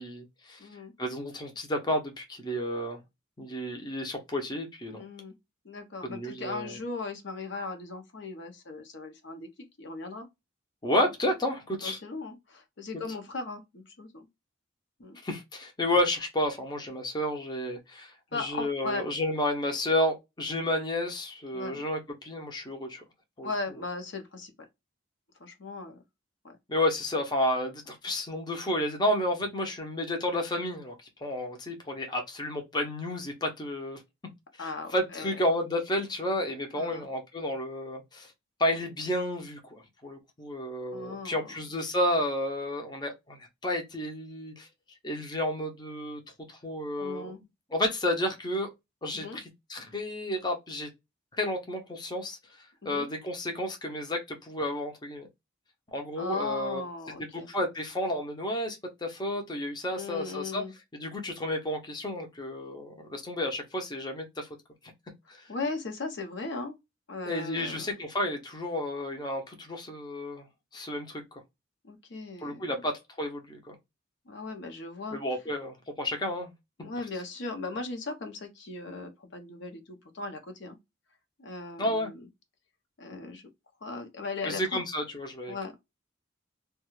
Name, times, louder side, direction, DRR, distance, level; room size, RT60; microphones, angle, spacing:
voice 1, 0.0-0.6 1.0-3.0 3.4-5.0 6.0-6.8 10.8-12.0 15.2-23.0 23.4-23.5 26.7-30.9 31.2-34.0 34.6-38.3 38.6-44.7 45.0-46.2 46.5-47.3 47.7-48.7 49.0-49.4 49.7-50.9 51.4-52.4 52.8-55.3 55.9-56.8 57.3-60.6 60.9-64.5 65.3-65.5 67.3-70.5 70.7-71.4 72.4-73.7 75.1-76.5 81.8-82.1 84.4-85.6, left 1 dB, 20° left, 0.6 m, -31 dB
voice 2, 0.6-0.9 4.9-5.4 5.6-9.5 9.8-10.3 11.8-14.3 15.0-15.2 18.3-19.0 21.5-21.8 23.4-24.5 25.4-26.0 26.4-26.6 34.6-35.3 36.7-37.1 40.9-41.5 47.0-47.4 49.1-49.4 52.8-53.1 56.2-57.5 59.9-60.7 65.5-66.8 67.1-67.9 71.8-72.8 74.3-75.2 76.8-80.8 81.4-82.3 83.0-83.4 83.8-84.8 85.5-85.7, left 3 dB, 60° left, 0.7 m, -38 dB
2.4 x 2.2 x 3.0 m
head